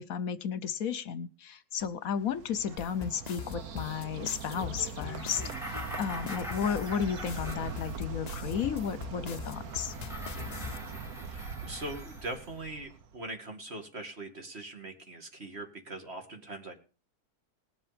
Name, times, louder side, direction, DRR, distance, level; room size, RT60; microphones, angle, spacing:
voice 1, 0.0-5.4 6.0-9.9, left 7 dB, 70° left, 15 dB, 1.2 m, -33 dB
Bird, 1.8-13.2, right 6 dB, 75° right, 1.6 m, -42 dB
sound 1, 2.8-10.8, left 8 dB, 50° left, 0.5 m, -42 dB
sound 2, 5.1-8.3 9.4-12.5, left 1 dB, ahead, 3.7 m, -43 dB
voice 2, 11.3-16.7, right 2 dB, 40° right, 5 dB, 2.6 m, -41 dB
19.5 x 7.4 x 5.1 m, 0.35 s
omnidirectional pair, 1.6 m